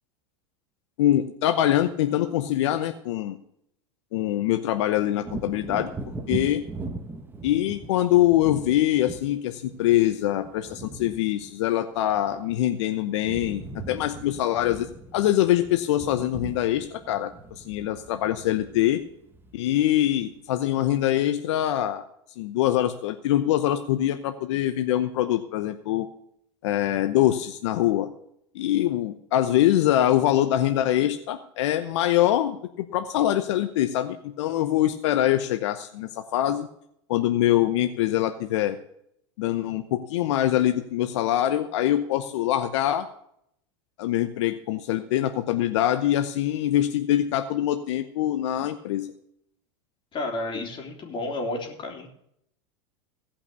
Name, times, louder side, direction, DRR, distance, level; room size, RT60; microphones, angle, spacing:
voice 1, 1.0-3.4 4.1-5.9 6.3-6.6 7.4-19.0 19.5-22.0 22.4-26.1 26.6-28.1 28.5-36.7 37.1-38.8 39.4-43.0 44.0-49.1, left 13 dB, 75° left, 9 dB, 0.8 m, -24 dB
Wind / Thunder, 5.2-12.8 13.1-20.3 20.7-20.9, right 3 dB, 15° right, 1.4 m, -40 dB
voice 2, 50.1-52.1, left 2 dB, 30° left, 1 dB, 3.6 m, -31 dB
17.5 x 5.8 x 6.8 m, 0.73 s
hypercardioid pair, 105°, 15 cm